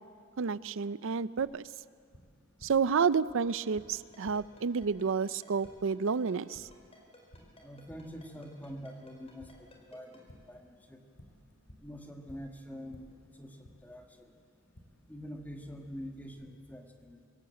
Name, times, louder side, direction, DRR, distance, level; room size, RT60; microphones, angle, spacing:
voice 1, 0.4-1.6 2.6-6.7, right 5 dB, 65° right, 17 dB, 0.5 m, -30 dB
Tap, 1.4-16.3, equal, 85° left, 3.7 m, -60 dB
Ringtone, 3.5-10.2, left 2 dB, 30° left, 4.5 m, -56 dB
voice 2, 7.6-10.1 10.5-11.0 11.8-13.1 13.4-14.3 15.1-17.2, equal, 10° left, 3 dB, 1.8 m, -45 dB
25.0 x 16.5 x 7.9 m, 2.1 s
head